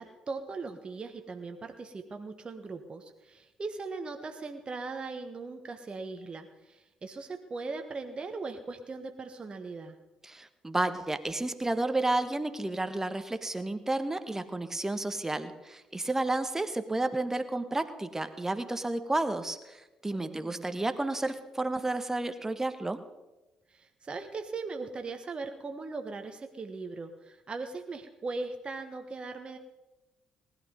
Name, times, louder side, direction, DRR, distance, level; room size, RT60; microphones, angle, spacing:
voice 1, 0.0-10.0 20.1-20.8 23.7-29.6, right 3 dB, 30° right, 5 dB, 1.3 m, -39 dB
voice 2, 10.2-23.0, right 2 dB, 15° right, 10 dB, 1.4 m, -31 dB
19.5 x 11.5 x 5.3 m, 1.0 s
figure-of-eight pair, 45°, 3 cm